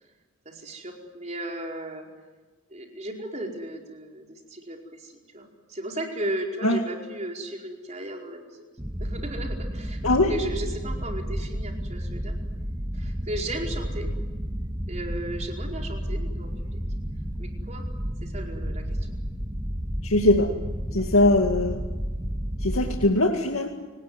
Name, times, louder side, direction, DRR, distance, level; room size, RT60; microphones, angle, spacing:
voice 1, 0.4-2.1 2.7-8.7 9.0-10.0 10.3-12.3 12.9-14.1 14.9-16.8 17.4-17.8 18.2-19.1 20.9-21.0, right 1 dB, 35° right, 1 dB, 4.9 m, -35 dB
sound 1, 8.8-23.1, equal, 15° right, 1.6 m, -31 dB
voice 2, 20.0-20.5 20.9-21.8 22.6-23.7, left 2 dB, 85° left, 2 dB, 2.3 m, -21 dB
30.0 x 19.5 x 9.7 m, 1.3 s
head